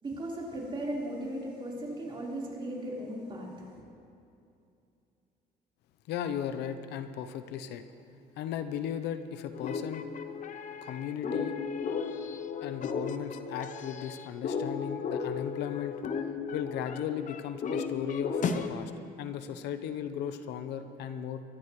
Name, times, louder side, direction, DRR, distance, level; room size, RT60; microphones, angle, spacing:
voice 1, 0.0-3.8, right 1 dB, 30° right, -4 dB, 4.2 m, -37 dB
voice 2, 6.1-7.8 8.4-10.1 10.8-11.6 12.6-16.0 16.5-18.9 19.2-21.4, left 9 dB, 80° left, 9 dB, 0.8 m, -36 dB
sound 1, 9.5-18.7, left 5 dB, 50° left, 0.9 m, -35 dB
23.0 x 14.5 x 3.2 m, 2.7 s
cardioid pair, 110°, 17 cm